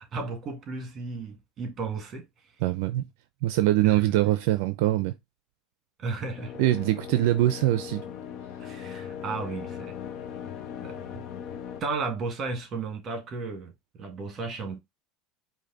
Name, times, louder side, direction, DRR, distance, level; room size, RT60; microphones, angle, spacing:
voice 1, 0.0-2.2 3.8-4.1 6.0-6.6 8.6-10.0 10.8-11.0 11.8-13.7 14.0-14.8, right 4 dB, 30° right, 1.7 m, -34 dB
voice 2, 2.6-3.0 3.4-5.1 6.6-8.1, right 14 dB, 70° right, 0.4 m, -23 dB
sound 1, 6.0-11.8, left 8 dB, 45° left, 0.8 m, -39 dB
5.0 x 2.6 x 3.8 m
supercardioid pair, 125°, 0 cm